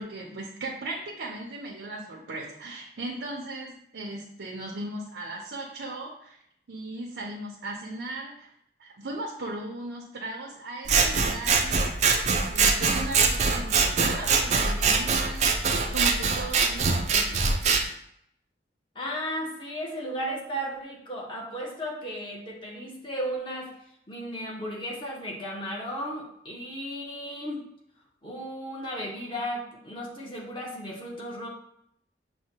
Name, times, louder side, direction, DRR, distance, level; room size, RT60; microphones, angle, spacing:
voice 1, 0.0-6.4 6.7-8.5 8.8-11.8 12.5-17.5, right 2 dB, 90° right, -2 dB, 0.6 m, -37 dB
Scissors, 10.9-17.8, right 4 dB, 40° right, 0.4 m, -23 dB
voice 2, 18.9-23.7 24.1-27.6 28.2-31.5, equal, 30° left, -3 dB, 0.9 m, -35 dB
6.2 x 2.2 x 2.8 m, 0.71 s
head